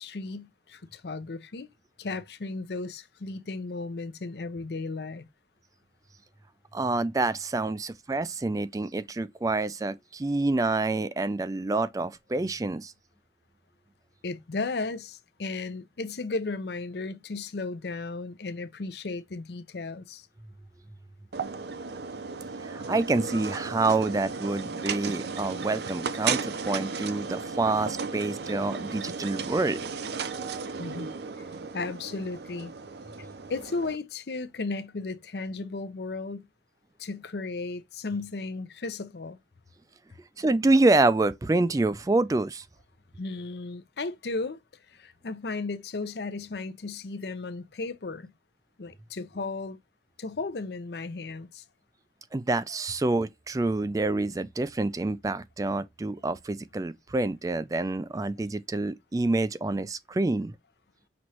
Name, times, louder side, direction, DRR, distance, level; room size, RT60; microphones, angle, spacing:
voice 1, 0.0-1.7 2.0-5.3 14.2-20.3 30.8-31.1 31.4-31.5 31.7-32.7 33.5-36.5 37.0-39.4 43.2-44.6 44.9-48.3 48.8-49.8 50.2-51.6, left 3 dB, 70° left, 0.6 m, -35 dB
voice 2, 6.7-12.9 22.6-29.8 40.4-42.7 52.3-60.5, right 2 dB, 20° right, 0.3 m, -27 dB
sound 1, 21.3-34.0, right 5 dB, 65° right, 0.6 m, -35 dB
6.1 x 3.0 x 2.8 m
head